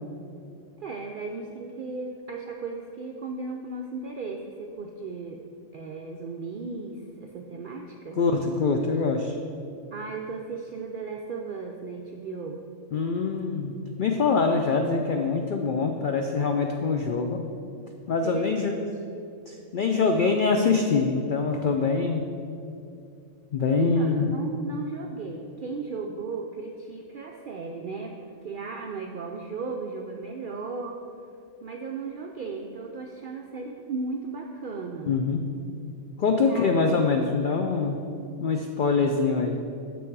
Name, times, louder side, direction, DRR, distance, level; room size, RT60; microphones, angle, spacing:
voice 1, 0.8-5.4 5.7-8.2 9.9-12.6 18.2-19.2 23.8-31.0 31.6-35.1 36.5-36.7, right 4 dB, 75° right, 2 dB, 0.4 m, -36 dB
voice 2, 8.2-9.3 12.9-17.4 18.1-18.7 19.7-22.2 23.5-24.3 35.1-35.4 36.2-38.0 38.4-39.6, left 4 dB, 75° left, 4 dB, 0.4 m, -24 dB
7.1 x 6.2 x 4.6 m, 2.6 s
omnidirectional pair, 1.4 m